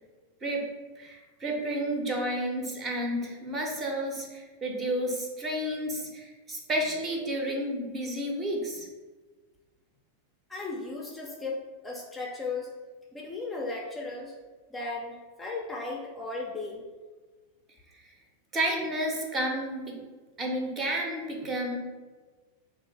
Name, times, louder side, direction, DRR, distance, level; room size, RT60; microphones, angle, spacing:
voice 1, 1.0-8.9 18.5-20.0 20.4-21.8, right 1 dB, 25° right, 0 dB, 0.8 m, -31 dB
voice 2, 10.5-12.7 13.1-14.3 14.7-16.9, left 3 dB, 10° left, -2 dB, 0.5 m, -36 dB
3.0 x 2.5 x 4.0 m, 1.3 s
figure-of-eight pair, 90°, 0 cm